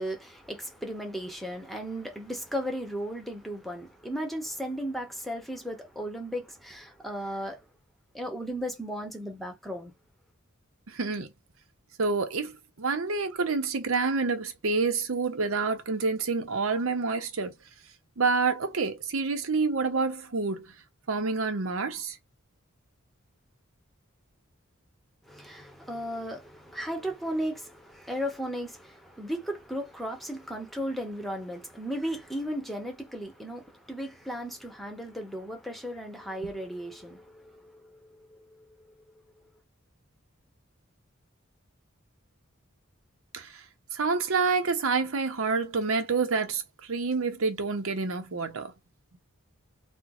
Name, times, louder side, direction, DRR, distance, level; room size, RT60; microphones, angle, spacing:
voice 1, 0.0-7.6 8.1-9.9 25.3-37.5, equal, ahead, 0.9 m, -35 dB
voice 2, 10.9-11.3 12.0-12.5 12.8-17.5 18.2-20.7 21.1-22.2 36.4-36.5 43.3-43.5 43.9-46.6 46.9-48.7, right 4 dB, 80° right, 0.7 m, -28 dB
4.4 x 2.1 x 2.5 m
head